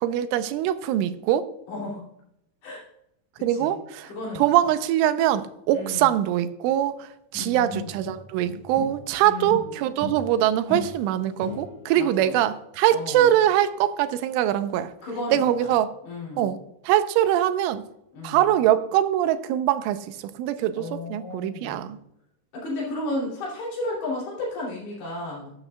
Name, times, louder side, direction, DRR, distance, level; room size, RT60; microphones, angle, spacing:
voice 1, 0.0-1.5 3.4-4.1 4.4-14.9 15.3-15.9 16.4-16.6 16.8-17.8 18.2-22.0, right 12 dB, 90° right, 11 dB, 3.2 m, -23 dB
voice 2, 1.7-2.1 2.6-2.8 3.4-3.8 4.0-4.5 5.7-6.2 7.4-7.9 9.2-9.8 11.9-12.4 12.9-13.3 15.0-15.7 16.0-16.5 18.1-18.5 20.7-21.9 22.5-25.5, left 2 dB, 65° left, -5 dB, 4.9 m, -33 dB
sound 1, 7.3-9.1 9.4-12.0, left 1 dB, 40° left, 2.9 m, -37 dB
13.0 x 12.5 x 2.3 m, 0.79 s
omnidirectional pair, 5.6 m